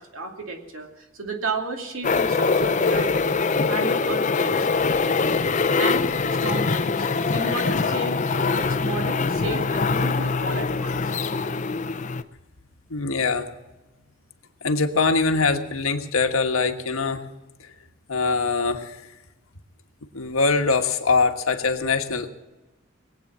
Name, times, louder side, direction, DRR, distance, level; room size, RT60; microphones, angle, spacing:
voice 1, 0.0-3.2 3.5-4.7 5.8-11.1, right 3 dB, 75° right, 3 dB, 2.5 m, -33 dB
sound 1, 2.0-12.2, left 4 dB, 35° left, 0.5 m, -23 dB
voice 2, 12.9-13.5 14.6-17.2 18.1-19.0 20.1-22.3, left 4 dB, 85° left, 5 dB, 1.4 m, -23 dB
21.0 x 8.8 x 7.4 m, 1.1 s
head